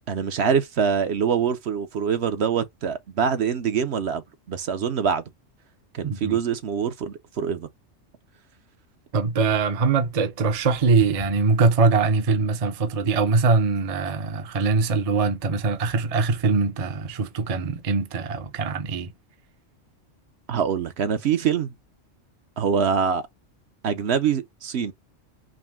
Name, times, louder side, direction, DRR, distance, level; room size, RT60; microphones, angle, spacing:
voice 1, 0.1-4.2 4.5-5.2 5.9-7.7 20.5-21.7 22.6-23.2 23.8-24.9, right 7 dB, 60° right, 0.9 m, -24 dB
voice 2, 6.0-6.4 9.1-19.1, right 4 dB, 40° right, 0.6 m, -22 dB
5.0 x 2.1 x 3.5 m
omnidirectional pair, 1.3 m